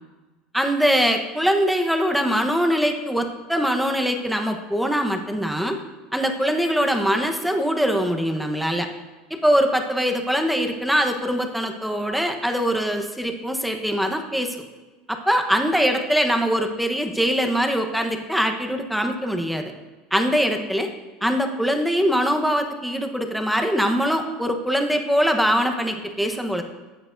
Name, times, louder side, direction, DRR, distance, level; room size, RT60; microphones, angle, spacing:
voice 1, 0.5-5.8 6.1-8.9 9.3-14.6 15.1-19.7 20.1-20.9 21.2-26.6, equal, ahead, 5 dB, 1.0 m, -22 dB
14.0 x 9.0 x 2.6 m, 1.2 s
supercardioid pair, 130°, 0 cm